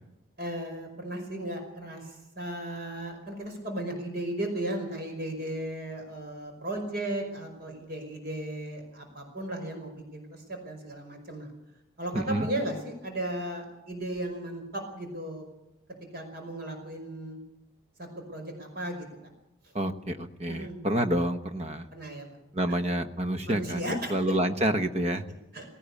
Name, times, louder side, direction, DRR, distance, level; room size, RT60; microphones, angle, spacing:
voice 1, 0.4-2.0 2.4-11.5 12.0-15.4 16.1-17.4 18.0-19.1 20.5-20.8 21.9-22.3 22.7-22.8 23.5-24.1 25.5-25.6, right 1 dB, 45° right, 3 dB, 5.2 m, -35 dB
voice 2, 12.1-12.5 19.7-21.9 22.5-25.2, right 1 dB, 30° right, 9 dB, 1.1 m, -28 dB
18.0 x 17.5 x 8.5 m, 0.91 s
head